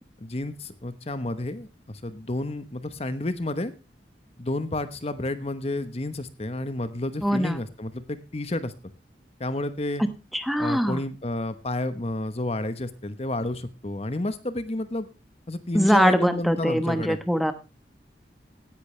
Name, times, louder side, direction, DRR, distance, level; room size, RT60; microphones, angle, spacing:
voice 1, 0.2-3.7 4.4-8.7 9.4-10.0 10.6-15.1 15.5-17.2, left 1 dB, 35° left, 13 dB, 1.1 m, -30 dB
voice 2, 7.2-7.6 10.3-11.0 15.7-17.5, equal, ahead, 10 dB, 1.1 m, -22 dB
17.0 x 11.0 x 3.2 m, 0.29 s
head